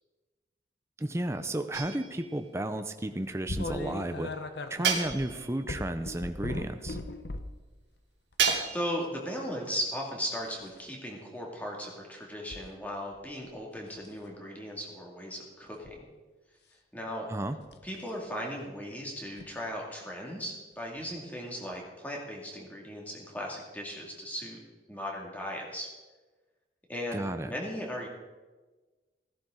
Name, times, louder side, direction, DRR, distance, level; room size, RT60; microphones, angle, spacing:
voice 1, 1.0-4.3 4.7-7.0 17.3-17.6 27.1-27.5, right 1 dB, 15° right, 8 dB, 0.6 m, -33 dB
sound 1, 1.7-2.4 4.8-5.6 8.4-9.1, right 6 dB, 80° right, 2.0 m, -30 dB
sound 2, 3.5-7.6 8.3-8.6 10.4-10.8 12.5-12.6 13.1-13.5 14.0-14.2 15.7-16.0 17.7-17.9 19.4-19.5 21.0-21.1 21.7-21.8, left 2 dB, 65° left, 0.9 m, -38 dB
voice 2, 8.7-16.1 16.9-17.3 17.8-24.6 24.9-25.9 26.9-28.1, equal, 10° left, -1 dB, 2.2 m, -37 dB
16.5 x 11.5 x 3.9 m, 1.3 s
head